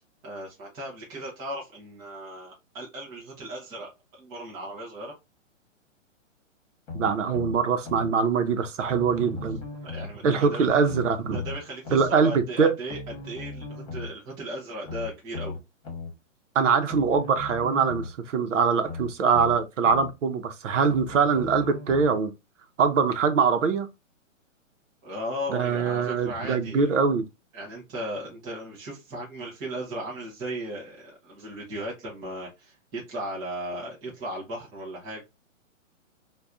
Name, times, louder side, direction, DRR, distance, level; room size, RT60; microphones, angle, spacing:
voice 1, 0.2-3.9 4.2-5.1 9.8-11.0 11.3-13.0 13.2-15.6 25.0-26.9 27.5-35.2, right 1 dB, 10° right, 0.5 m, -36 dB
sound 1, 6.9-8.1 8.9-10.1 10.8-12.1 12.9-14.1 14.8-16.1 16.9-18.1 18.8-20.1 20.9-22.1 22.8-22.9, left 3 dB, 30° left, 1.2 m, -37 dB
voice 2, 6.9-9.6 10.2-11.4 11.9-12.7 16.5-22.3 22.8-23.9 25.5-27.2, right 5 dB, 70° right, 0.8 m, -23 dB
2.6 x 2.3 x 3.4 m
hypercardioid pair, 145°, 39 cm